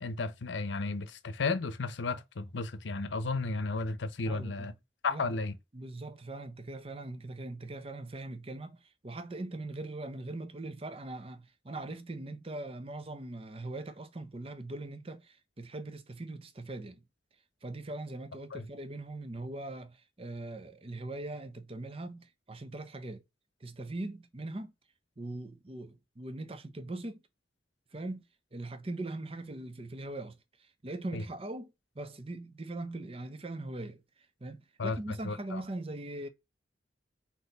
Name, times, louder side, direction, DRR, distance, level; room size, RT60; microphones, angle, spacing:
voice 1, 0.0-4.7 5.0-5.6 18.5-18.7 31.1-31.2 34.8-35.6, left 3 dB, 85° left, 0.7 m, -33 dB
voice 2, 4.2-4.7 5.1-5.4 5.7-17.0 17.6-23.2 23.6-24.7 25.2-27.2 27.9-28.3 28.5-34.0 34.4-36.3, right 2 dB, 30° right, 0.7 m, -41 dB
4.2 x 2.8 x 3.9 m
head